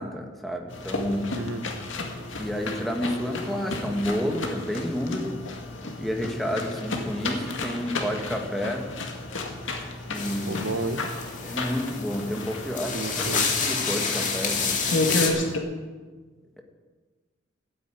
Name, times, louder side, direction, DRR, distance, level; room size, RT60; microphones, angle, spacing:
voice 1, 0.0-1.4 2.4-5.4 6.0-8.9 10.1-10.6 11.4-15.5, equal, ahead, 2 dB, 1.6 m, -30 dB
sound 1, 0.7-15.6, left 2 dB, 75° left, 2.2 m, -32 dB
voice 2, 1.3-1.6 10.5-11.0 12.9-13.5, right 2 dB, 80° right, 9 dB, 1.1 m, -31 dB
sound 2, 10.1-15.3, left 5 dB, 40° left, 2.3 m, -29 dB
12.5 x 9.5 x 8.9 m, 1.4 s
head